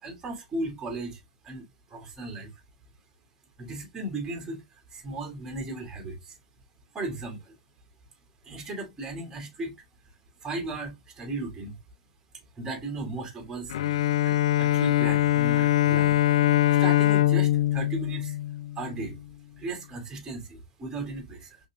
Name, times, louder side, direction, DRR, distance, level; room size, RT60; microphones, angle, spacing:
voice 1, 0.0-2.5 3.6-4.6 4.9-6.4 6.9-7.6 8.4-9.7 10.4-11.8 12.6-13.8 14.2-16.2 16.7-18.4 18.8-19.2 19.6-21.6, right 2 dB, 15° right, 2.2 m, -36 dB
Bowed string instrument, 13.7-19.1, left 13 dB, 60° left, 0.3 m, -23 dB
5.3 x 3.8 x 2.3 m
figure-of-eight pair, 110°, 4 cm